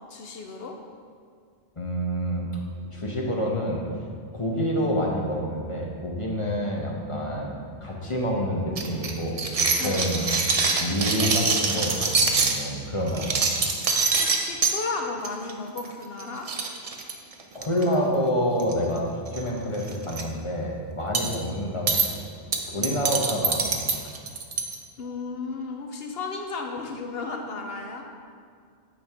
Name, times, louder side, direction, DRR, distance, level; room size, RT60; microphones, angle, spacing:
voice 1, 0.1-0.8 9.8-10.1 14.2-16.5 25.0-28.1, left 4 dB, 65° left, 3 dB, 0.8 m, -34 dB
voice 2, 1.8-2.5 2.9-3.8 4.3-10.3 10.8-13.4 17.5-22.0 22.7-23.8, equal, 30° left, -2 dB, 0.8 m, -28 dB
sound 1, 8.8-12.6 13.1-14.7 15.2-15.5 15.8-15.9 16.2-16.3 16.5-17.8 18.6-19.0 19.3-19.4 19.8-20.2 21.1-21.4 21.9-22.1 22.5-24.7, right 4 dB, 45° right, 0.5 m, -24 dB
8.6 x 5.2 x 3.4 m, 2.2 s
omnidirectional pair, 1.2 m